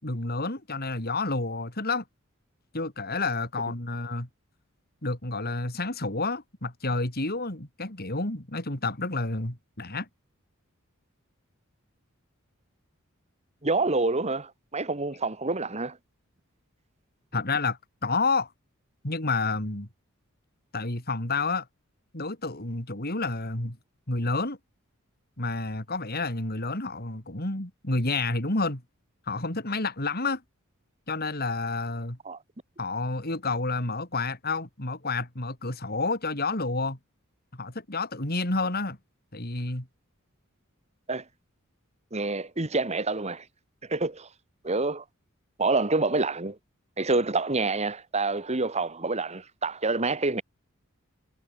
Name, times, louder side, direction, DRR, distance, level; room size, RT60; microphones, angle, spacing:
voice 1, 0.0-2.0 2.7-4.3 5.0-10.1 17.3-18.5 19.0-19.9 20.7-21.7 22.1-23.8 24.1-24.6 25.4-28.8 29.3-30.4 31.1-32.2 32.8-37.0 37.5-39.0 39.3-39.9, left 3 dB, 45° left, 4.1 m, -29 dB
voice 2, 13.6-16.0 32.3-32.4 41.1-41.2 42.1-43.5 43.8-44.3 44.6-45.0 45.6-46.6 47.0-50.4, right 3 dB, 30° right, 1.7 m, -27 dB
head